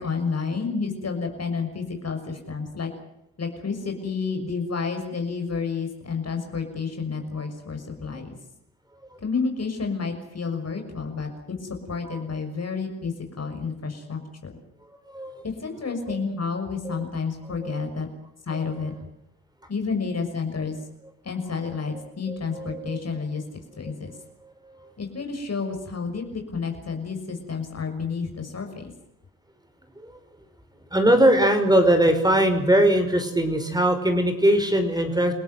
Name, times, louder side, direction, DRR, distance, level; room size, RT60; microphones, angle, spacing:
voice 1, 0.0-2.9 3.4-8.4 9.2-11.3 11.6-14.6 15.6-18.1 18.5-18.9 19.7-20.8 21.2-23.4 23.8-24.1 25.0-28.9, left 5 dB, 40° left, 4 dB, 6.3 m, -30 dB
voice 2, 15.1-15.4 16.1-16.2 16.8-17.0 17.6-17.9 18.5-18.8 22.3-23.2 24.2-24.9 30.0-30.2 30.9-35.3, right 1 dB, 10° right, 7 dB, 5.6 m, -22 dB
28.5 x 17.5 x 7.9 m, 0.81 s
hypercardioid pair, 55°, 37 cm